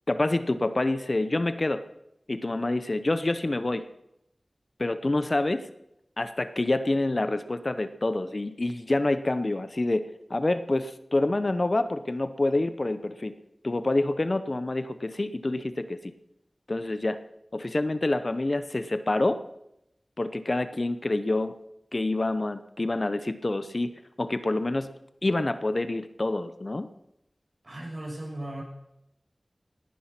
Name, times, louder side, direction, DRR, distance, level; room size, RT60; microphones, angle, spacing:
voice 1, 0.1-1.8 2.3-3.9 4.8-5.7 6.2-13.3 13.6-16.1 16.7-17.2 17.5-19.4 20.2-21.6 21.9-24.9 25.2-26.9, left 2 dB, 50° left, 12 dB, 0.8 m, -27 dB
voice 2, 27.6-28.6, right 1 dB, 50° right, -2 dB, 6.8 m, -36 dB
19.0 x 10.0 x 6.0 m, 0.84 s
wide cardioid pair, 55°, 0 cm